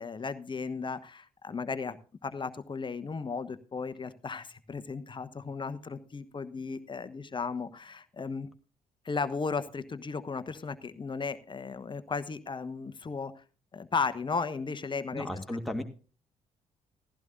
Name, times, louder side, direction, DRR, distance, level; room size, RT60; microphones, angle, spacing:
voice 1, 0.0-8.5 9.0-13.4 13.7-15.3, left 4 dB, 30° left, 12 dB, 1.1 m, -35 dB
voice 2, 15.1-15.8, left 1 dB, ahead, 3 dB, 2.3 m, -34 dB
15.5 x 14.0 x 2.6 m, 0.37 s
figure-of-eight pair, 40°, 17 cm